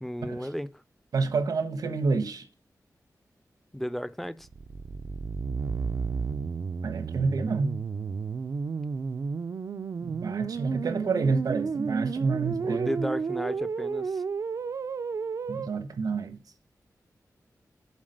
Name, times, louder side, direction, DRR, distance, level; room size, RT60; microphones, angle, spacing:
voice 1, 0.0-0.7 3.7-4.5 12.6-14.2, equal, 5° left, 0.5 m, -34 dB
voice 2, 1.1-2.5 6.8-7.7 10.0-13.0 15.5-16.4, right 4 dB, 85° right, 1.2 m, -28 dB
sound 1, 4.4-15.7, right 5 dB, 60° right, 0.5 m, -32 dB
7.4 x 4.2 x 6.6 m
wide cardioid pair, 110°, 6 cm